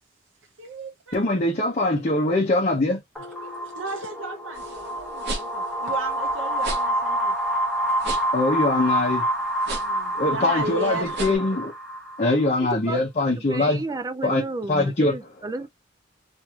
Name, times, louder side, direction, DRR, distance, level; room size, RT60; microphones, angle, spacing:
voice 1, 0.6-1.4 3.2-7.3 9.8-11.3, right 2 dB, 80° right, 0.6 m, -35 dB
voice 2, 1.1-3.0 8.3-9.2 10.2-11.7 12.2-13.8 14.2-14.4 14.7-15.2, left 2 dB, 40° left, 0.7 m, -22 dB
sound 1, 3.2-12.6, right 1 dB, ahead, 1.0 m, -28 dB
sound 2, 4.5-11.4, right 2 dB, 60° right, 0.9 m, -36 dB
voice 3, 12.7-13.0 13.5-15.7, right 2 dB, 20° right, 0.3 m, -32 dB
3.0 x 2.6 x 2.3 m
head